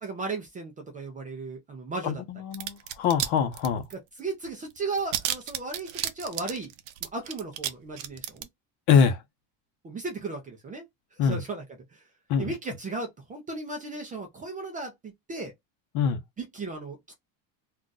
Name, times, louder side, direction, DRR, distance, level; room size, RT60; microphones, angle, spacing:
voice 1, 0.0-2.2 3.9-6.7 7.0-8.5 9.8-10.8 11.1-11.6 11.9-12.0 12.4-15.5 16.4-17.1, right 3 dB, 20° right, 0.4 m, -36 dB
voice 2, 2.0-3.9 8.9-9.2 11.2-11.4 12.3-12.5 15.9-16.2, left 7 dB, 60° left, 0.8 m, -24 dB
sound 1, 2.5-3.3 3.5-4.2 4.5-4.6 4.8-7.7 8.0-8.4, right 12 dB, 70° right, 0.7 m, -31 dB
2.5 x 2.3 x 3.8 m
cardioid pair, 165°, 44 cm